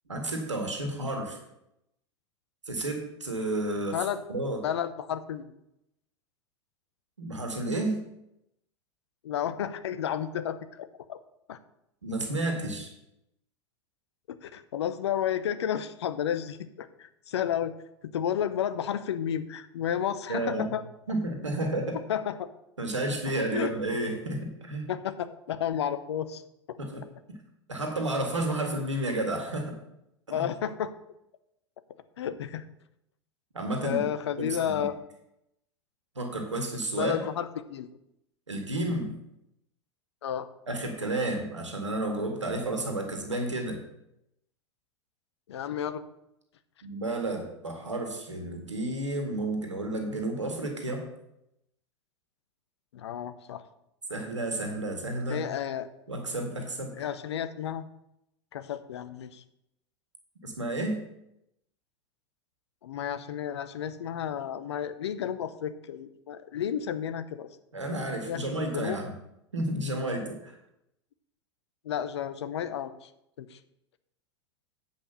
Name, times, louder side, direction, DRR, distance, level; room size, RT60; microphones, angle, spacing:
voice 1, 0.1-1.4 2.7-4.6 7.2-8.0 12.0-12.9 20.3-20.7 21.1-22.0 22.8-24.8 26.8-27.0 27.7-29.7 30.4-30.5 33.5-34.0 34.4-34.9 36.2-37.1 38.5-39.1 40.7-43.8 46.8-51.0 54.1-55.4 56.1-56.9 60.4-61.0 67.7-69.1 69.5-70.6, right 1 dB, 85° right, 3 dB, 1.8 m, -31 dB
voice 2, 3.9-4.2 4.6-5.5 9.2-11.2 11.5-11.6 14.3-17.7 18.1-20.8 22.1-22.4 23.5-23.7 24.9-26.4 26.7-26.8 30.3-30.9 32.2-32.6 33.8-34.9 37.0-37.9 40.2-40.5 45.5-46.0 52.9-53.6 55.3-55.9 57.0-57.9 58.5-59.4 62.8-67.5 68.3-69.0 71.8-73.1 73.4-73.6, left 9 dB, 65° left, 12 dB, 0.7 m, -32 dB
8.7 x 5.3 x 6.8 m, 0.83 s
figure-of-eight pair, 90°, 15 cm